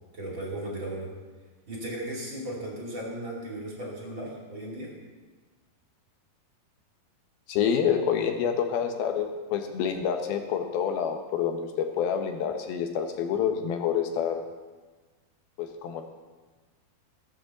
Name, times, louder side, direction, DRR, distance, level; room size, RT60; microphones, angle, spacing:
voice 1, 0.1-1.1 1.7-4.9, right 1 dB, 35° right, -3 dB, 3.0 m, -36 dB
voice 2, 7.5-14.4 15.6-16.0, left 8 dB, 80° left, 5 dB, 2.9 m, -27 dB
16.0 x 7.9 x 7.1 m, 1.3 s
omnidirectional pair, 4.3 m